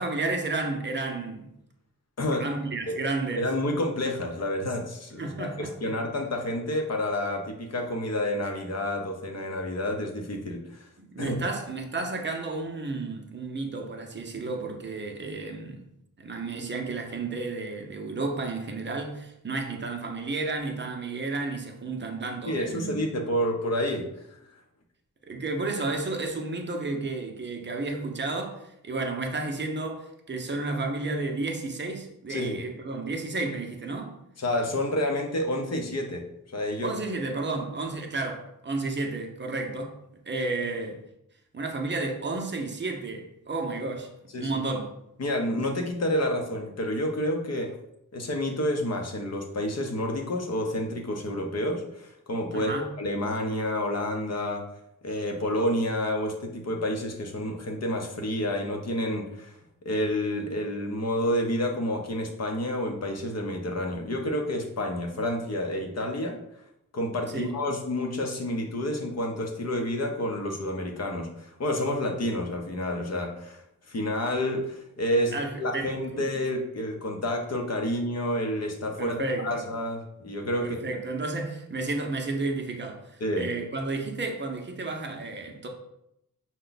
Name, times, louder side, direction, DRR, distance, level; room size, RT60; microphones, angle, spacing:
voice 1, 0.0-1.5 2.4-3.5 5.2-5.9 11.0-15.8 16.2-23.1 25.3-34.2 36.8-40.0 40.3-41.0 41.5-44.1 44.4-44.9 52.5-52.9 67.3-67.5 75.3-76.2 79.0-79.7 80.6-85.7, right 3 dB, 30° right, 0.6 m, -32 dB
voice 2, 3.4-10.8 11.2-11.4 22.5-24.0 32.3-32.6 34.4-36.9 44.3-44.5 45.2-47.7 48.1-54.6 55.0-59.5 59.8-66.4 66.9-79.2 79.4-80.8 83.2-83.5, left 1 dB, 45° left, 0.7 m, -29 dB
5.6 x 2.2 x 3.9 m
wide cardioid pair, 155°, 35 cm